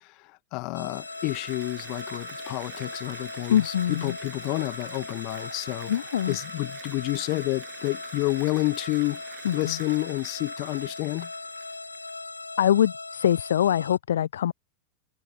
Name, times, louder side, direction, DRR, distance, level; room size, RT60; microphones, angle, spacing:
voice 1, 0.5-5.9 6.3-9.2 9.5-11.3, left 27 dB, 40° left, 1.7 m, -29 dB
sound 1, 0.7-14.0, left 3 dB, 80° left, 3.8 m, -39 dB
Applause, 0.9-12.6, right 22 dB, 40° right, 7.4 m, -47 dB
voice 2, 3.5-4.2 5.9-6.4 9.4-9.8 12.6-14.5, left 10 dB, 60° left, 0.3 m, -23 dB
figure-of-eight pair, 90°, 0 cm